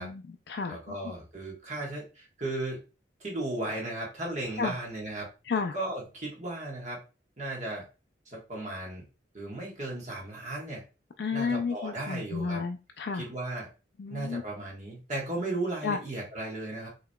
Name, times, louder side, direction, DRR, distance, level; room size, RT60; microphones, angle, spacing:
voice 1, 0.0-1.1 4.6-4.7 5.5-5.8 11.2-13.2 14.0-14.4 15.8-16.0, left 5 dB, 70° left, 5 dB, 0.4 m, -32 dB
voice 2, 0.7-2.8 3.2-5.3 5.7-7.0 7.4-7.9 8.3-9.0 9.3-10.8 11.3-12.6 13.1-13.7 14.1-16.9, right 2 dB, 40° right, -2 dB, 1.3 m, -35 dB
5.7 x 3.0 x 2.2 m, 0.32 s
head